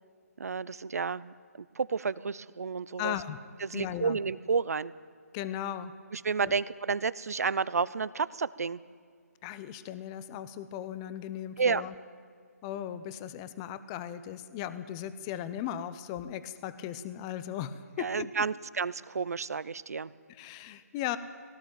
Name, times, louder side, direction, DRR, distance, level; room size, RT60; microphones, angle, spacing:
voice 1, 0.4-1.3 1.8-3.2 3.6-4.9 6.1-8.8 11.6-11.8 18.0-20.1, right 5 dB, 70° right, 18 dB, 0.7 m, -31 dB
voice 2, 3.0-3.4 3.7-4.2 5.3-5.9 6.4-6.5 9.4-11.9 12.6-18.3 20.3-21.2, left 11 dB, 20° left, 13 dB, 0.7 m, -37 dB
18.0 x 17.5 x 9.0 m, 2.1 s
hypercardioid pair, 160°, 9 cm